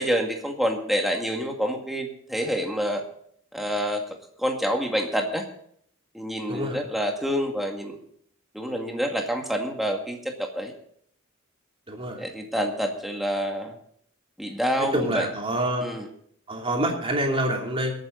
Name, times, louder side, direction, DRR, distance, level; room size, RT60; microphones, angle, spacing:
voice 1, 0.0-3.0 3.5-4.0 4.4-5.5 6.1-8.0 8.5-10.7 12.2-13.8 14.4-15.3 15.8-16.1, equal, ahead, 2 dB, 2.0 m, -27 dB
voice 2, 6.5-6.8 11.9-12.2 14.8-15.8 16.5-17.9, right 1 dB, 30° right, 0 dB, 3.0 m, -26 dB
22.5 x 9.2 x 3.9 m, 0.65 s
head